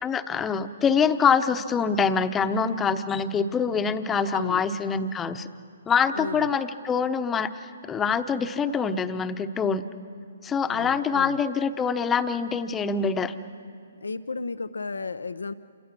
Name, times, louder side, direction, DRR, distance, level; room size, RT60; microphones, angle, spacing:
voice 1, 0.0-5.5 5.9-9.8 10.4-13.3, left 6 dB, 15° left, 10 dB, 1.0 m, -25 dB
voice 2, 4.3-4.6 6.1-6.6 10.7-11.4 14.0-15.5, left 4 dB, 85° left, 12 dB, 0.7 m, -33 dB
28.5 x 26.5 x 6.2 m, 2.6 s
hypercardioid pair, 140°, 0 cm